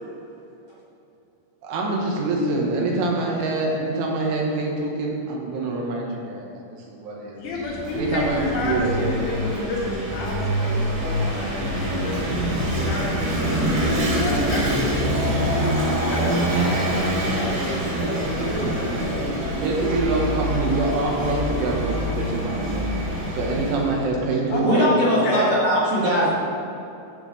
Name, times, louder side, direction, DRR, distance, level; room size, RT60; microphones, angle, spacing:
voice 1, 1.6-7.6 7.9-9.2 19.5-23.0 23.3-24.9, right 3 dB, 80° right, -2 dB, 3.8 m, -25 dB
voice 2, 7.4-15.7 16.1-20.0 24.5-25.6, left 2 dB, 75° left, -5 dB, 4.3 m, -30 dB
Vehicle / Engine, 7.5-24.1, equal, 60° right, 2.8 m, -25 dB
voice 3, 18.3-18.7 24.6-26.3, equal, 40° right, -11 dB, 2.5 m, -21 dB
12.0 x 7.9 x 3.3 m, 2.7 s
omnidirectional pair, 5.6 m